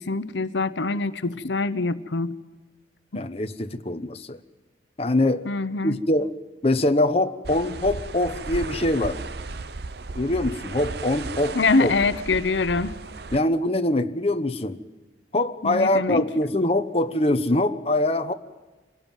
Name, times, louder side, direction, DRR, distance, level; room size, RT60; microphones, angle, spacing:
voice 1, 0.0-2.4 5.4-6.0 11.5-13.0 15.6-16.3, left 3 dB, 80° left, 1.0 m, -24 dB
voice 2, 3.1-4.4 5.0-5.5 5.8-6.4 6.6-9.2 10.1-11.9 13.3-14.8 15.3-18.3, left 1 dB, 35° left, 1.1 m, -23 dB
sound 1, 7.4-13.4, right 3 dB, 60° right, 0.8 m, -35 dB
25.5 x 17.5 x 9.2 m
head